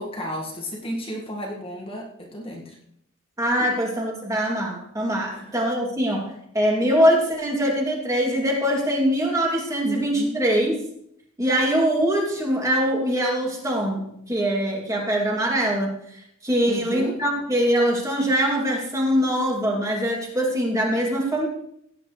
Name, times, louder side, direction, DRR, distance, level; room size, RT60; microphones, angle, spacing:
voice 1, 0.0-2.8 5.3-5.5 9.8-10.4 16.7-17.2, equal, 25° left, -2 dB, 1.8 m, -33 dB
voice 2, 3.4-10.8 11.4-15.9 16.4-21.5, equal, 15° right, -2 dB, 2.7 m, -23 dB
16.5 x 9.6 x 3.3 m, 0.72 s
head